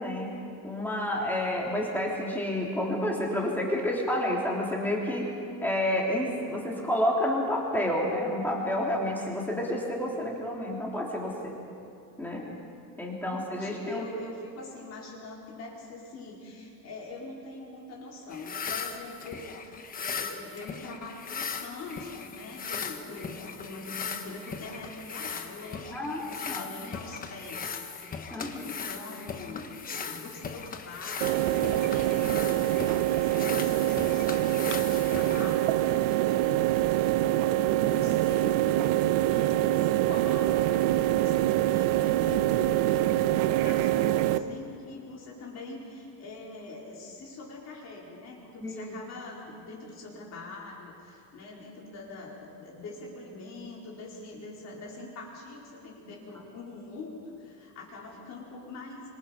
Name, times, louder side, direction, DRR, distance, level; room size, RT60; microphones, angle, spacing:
voice 1, 0.0-5.4 5.6-11.5 12.2-12.5 13.0-14.0 25.9-26.7 28.3-28.7 48.6-49.0, left 1 dB, 5° left, -3 dB, 3.4 m, -30 dB
voice 2, 12.9-38.6 39.3-59.1, left 3 dB, 35° left, -3 dB, 4.6 m, -43 dB
sound 1, 18.3-35.9, left 6 dB, 20° left, 1.1 m, -38 dB
sound 2, 31.2-44.4, right 14 dB, 75° right, 1.1 m, -25 dB
26.0 x 26.0 x 5.3 m, 2.5 s
cardioid pair, 170°, 43 cm